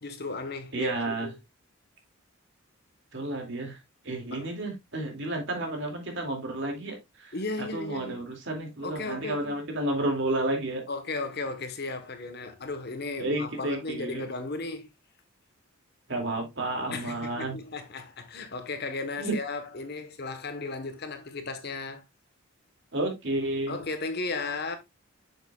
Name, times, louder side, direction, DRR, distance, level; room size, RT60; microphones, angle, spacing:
voice 1, 0.0-1.4 4.3-4.5 7.3-8.3 8.8-9.5 10.9-14.9 16.9-22.0 23.7-24.8, left 3 dB, 50° left, 1.2 m, -35 dB
voice 2, 0.7-1.3 3.1-3.8 4.0-10.8 13.2-14.2 16.1-17.6 19.2-19.4 22.9-23.8, right 1 dB, 60° right, 2.5 m, -31 dB
7.8 x 6.6 x 2.4 m
head